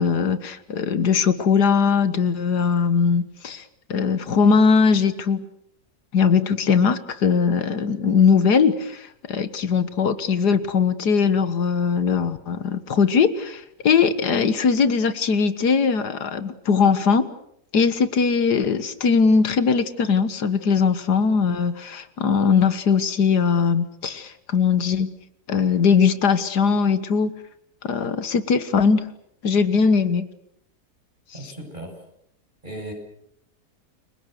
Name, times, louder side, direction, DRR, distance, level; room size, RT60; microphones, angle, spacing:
voice 1, 0.0-3.6 3.9-5.5 6.1-17.3 17.7-25.1 25.5-27.3 27.8-29.1 29.4-30.3, left 5 dB, 85° left, 12 dB, 2.0 m, -20 dB
voice 2, 31.3-32.0 32.6-32.9, right 1 dB, 30° right, 2 dB, 7.9 m, -36 dB
29.5 x 24.0 x 6.6 m, 0.72 s
omnidirectional pair, 1.7 m